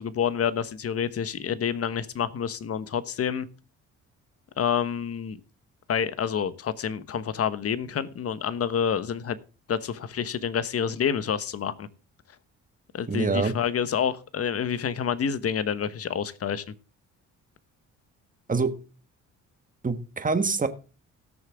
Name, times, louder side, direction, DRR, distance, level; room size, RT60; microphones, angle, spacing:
voice 1, 0.0-3.5 4.6-5.4 5.9-9.4 9.7-11.9 12.9-16.7, left 8 dB, 50° left, 1.2 m, -28 dB
voice 2, 13.1-13.5 18.5-18.7 19.8-20.7, right 4 dB, 25° right, 1.6 m, -25 dB
17.5 x 6.9 x 3.6 m
cardioid pair, 90°, 30 cm